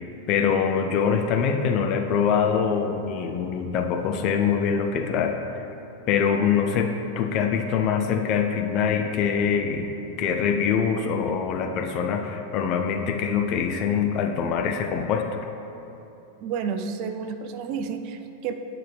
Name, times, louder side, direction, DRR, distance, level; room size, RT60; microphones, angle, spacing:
voice 1, 0.3-5.6 6.1-9.9 10.2-15.3, left 6 dB, 40° left, 4 dB, 0.5 m, -24 dB
voice 2, 16.4-18.5, right 6 dB, 45° right, 7 dB, 0.5 m, -30 dB
8.8 x 5.7 x 3.4 m, 2.9 s
figure-of-eight pair, 90°, 0 cm